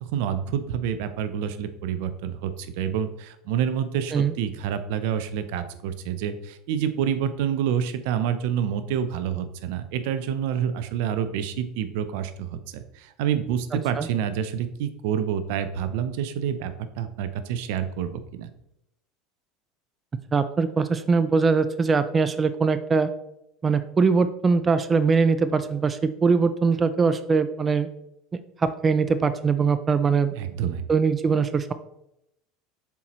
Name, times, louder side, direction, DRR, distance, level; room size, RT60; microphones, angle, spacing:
voice 1, 0.0-18.5 30.3-30.9, right 9 dB, 75° right, 11 dB, 0.5 m, -28 dB
voice 2, 20.3-23.1 23.6-27.9 28.3-30.3 30.9-31.7, right 5 dB, 25° right, 11 dB, 0.4 m, -22 dB
6.9 x 4.5 x 3.0 m, 0.82 s
supercardioid pair, 100°, 0 cm